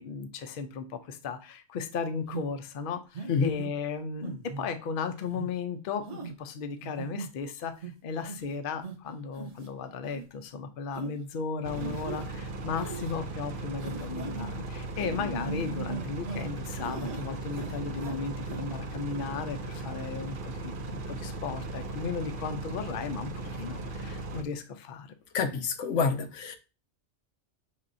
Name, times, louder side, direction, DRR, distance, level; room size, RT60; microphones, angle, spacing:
voice 1, 0.0-25.1, left 5 dB, 55° left, 0.7 m, -35 dB
sound 1, 2.3-2.5 3.1-3.7 4.2-4.7 5.2-5.5 6.1-6.3 6.8-7.3 7.8-7.9 8.3-8.5 8.8-8.9 9.3-9.7 10.1-10.2 10.9-11.1 11.8-12.3 12.8-13.1 13.8-14.5 15.0-16.5 16.8-17.2 17.5-18.2 18.4-18.6, right 4 dB, 80° right, 1.2 m, -38 dB
sound 2, 11.6-24.4, right 2 dB, 55° right, 0.7 m, -37 dB
voice 2, 25.3-26.6, left 5 dB, 85° left, 1.0 m, -27 dB
5.7 x 3.6 x 2.5 m
omnidirectional pair, 1.2 m